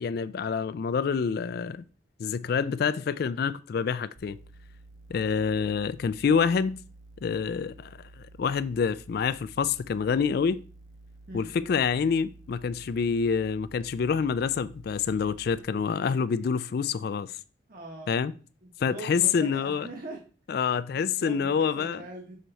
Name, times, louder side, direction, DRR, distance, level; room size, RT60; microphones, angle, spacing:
voice 1, 0.0-1.8 2.2-4.4 5.1-6.8 7.2-10.6 11.3-17.4 18.1-18.3 18.8-19.9 20.5-22.0, left 6 dB, 50° left, 0.3 m, -27 dB
sound 1, 4.2-15.6, right 2 dB, 85° right, 0.9 m, -51 dB
voice 2, 17.7-18.1 18.6-20.2 20.6-20.7 21.2-22.4, right 2 dB, 45° right, 1.2 m, -42 dB
6.4 x 4.4 x 4.0 m
head